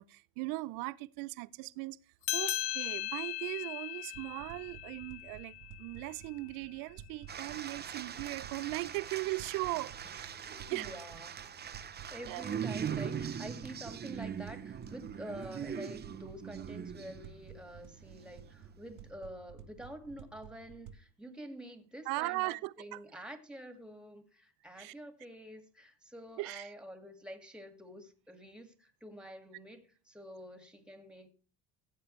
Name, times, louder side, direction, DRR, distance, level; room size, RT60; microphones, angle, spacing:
voice 1, 0.0-2.0 2.3-10.9 12.2-12.5 22.1-23.0 24.8-24.9 26.4-26.7, right 21 dB, 75° right, 0.6 m, -39 dB
sound 1, 2.2-7.1, left 15 dB, 75° left, 0.7 m, -39 dB
sound 2, 4.1-21.0, right 8 dB, 60° right, 1.0 m, -53 dB
sound 3, 7.3-17.6 18.1-18.4, right 8 dB, 30° right, 0.7 m, -41 dB
voice 2, 10.4-31.3, equal, 5° right, 2.0 m, -48 dB
15.0 x 7.6 x 3.2 m
supercardioid pair, 95°, 34 cm